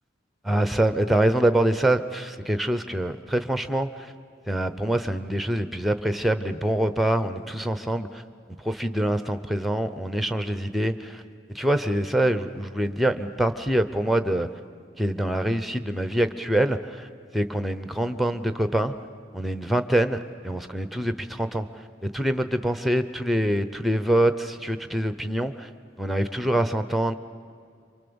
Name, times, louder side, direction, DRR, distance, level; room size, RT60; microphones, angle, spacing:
voice 1, 0.4-4.1 4.5-8.2 8.6-11.2 11.5-14.5 15.0-17.1 17.3-18.9 19.3-25.7 26.0-27.1, right 1 dB, ahead, 10 dB, 0.8 m, -25 dB
27.5 x 24.5 x 7.1 m, 2.3 s
head